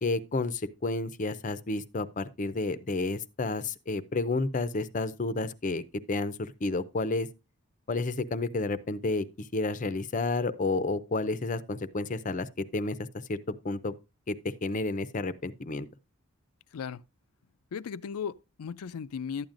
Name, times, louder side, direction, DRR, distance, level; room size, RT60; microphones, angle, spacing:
voice 1, 0.0-7.3 7.9-12.5 12.7-13.0 13.3-13.9 14.3-14.4 14.6-15.9, left 3 dB, 35° left, 0.5 m, -31 dB
voice 2, 16.7-17.0 17.7-19.5, left 6 dB, 85° left, 0.4 m, -36 dB
12.0 x 8.8 x 2.5 m
head